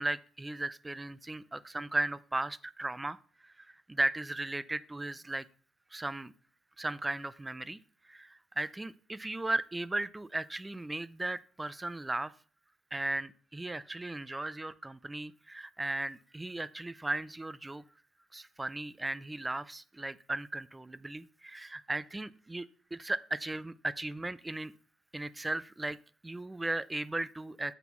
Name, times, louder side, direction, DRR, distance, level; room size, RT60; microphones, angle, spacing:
voice 1, 0.0-3.2 3.4-5.4 5.9-6.3 6.8-7.8 8.0-12.3 12.9-17.8 18.3-24.7 25.1-26.0 26.2-27.7, right 2 dB, 15° right, 17 dB, 0.4 m, -36 dB
8.1 x 6.9 x 3.1 m, 0.42 s
cardioid pair, 90°, 0 cm